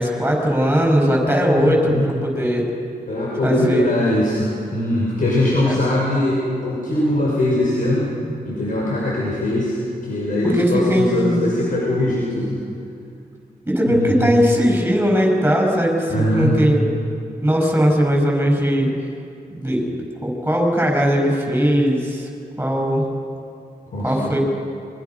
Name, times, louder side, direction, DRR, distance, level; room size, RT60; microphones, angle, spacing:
voice 1, 0.0-2.7 3.4-4.0 5.7-5.8 10.6-11.4 13.7-16.9 17.4-18.9 19.5-22.3 22.6-23.0 24.0-24.4, equal, 15° right, 0 dB, 7.7 m, -19 dB
voice 2, 1.5-2.1 3.1-8.1 8.4-12.6 13.9-14.3 16.1-16.5 23.9-24.3, left 1 dB, 55° left, -5 dB, 6.4 m, -21 dB
27.0 x 23.5 x 6.4 m, 2.5 s
cardioid pair, 75°, 16 cm